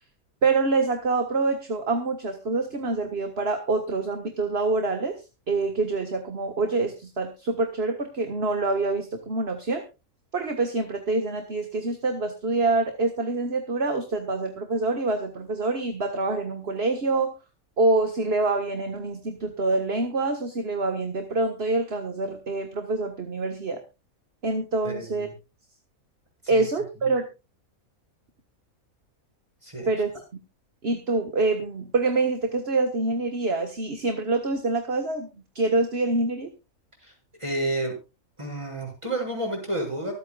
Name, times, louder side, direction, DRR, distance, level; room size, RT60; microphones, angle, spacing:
voice 1, 0.4-5.1 5.5-9.8 10.3-17.3 17.8-23.8 24.4-25.3 26.5-27.3 29.9-30.1 30.8-35.3 35.6-36.5, right 3 dB, 45° right, 6 dB, 1.7 m, -26 dB
voice 2, 24.8-25.3 26.4-26.7 29.6-29.9 37.0-37.1 37.4-38.0 38.4-40.1, right 1 dB, 20° right, 0 dB, 6.8 m, -30 dB
24.5 x 8.8 x 2.4 m, 0.27 s
omnidirectional pair, 1.5 m